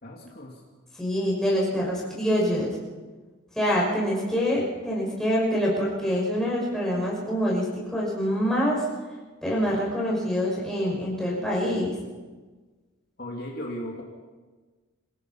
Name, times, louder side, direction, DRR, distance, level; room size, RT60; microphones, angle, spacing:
voice 1, 0.0-0.6 11.4-11.5 13.2-14.0, equal, 50° left, -1 dB, 2.6 m, -36 dB
voice 2, 1.0-2.8 3.5-8.8 9.4-12.0, equal, ahead, -5 dB, 6.3 m, -25 dB
26.5 x 17.5 x 5.8 m, 1.3 s
head